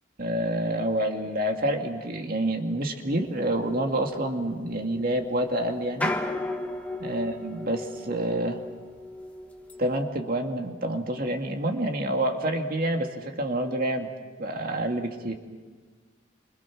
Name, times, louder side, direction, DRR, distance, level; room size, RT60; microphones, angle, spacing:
voice 1, 0.2-6.1 7.0-8.6 9.8-14.1 14.4-15.3, right 1 dB, 45° right, 3 dB, 2.5 m, -28 dB
sound 1, 3.1-10.0, left 1 dB, 5° left, 1.5 m, -36 dB
28.5 x 25.5 x 6.3 m, 1.5 s
head